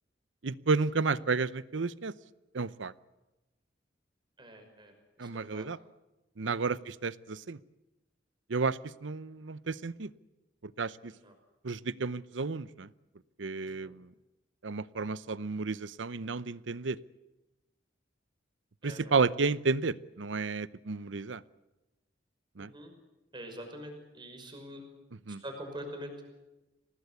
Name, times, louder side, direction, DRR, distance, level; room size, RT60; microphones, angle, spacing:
voice 1, 0.4-2.1 2.5-2.9 5.2-5.8 6.4-7.6 8.5-10.1 10.8-11.1 11.6-12.9 13.4-14.1 14.6-17.0 18.8-21.4 22.6-22.7 25.3-25.4, right 4 dB, 85° right, 18 dB, 0.8 m, -32 dB
voice 2, 4.4-4.9 5.2-5.7 6.4-6.6 11.0-11.3 13.7-13.9 18.8-19.2 22.6-22.9 23.3-24.8 25.4-26.2, equal, 25° right, 5 dB, 5.8 m, -45 dB
25.0 x 19.0 x 8.4 m, 1.0 s
head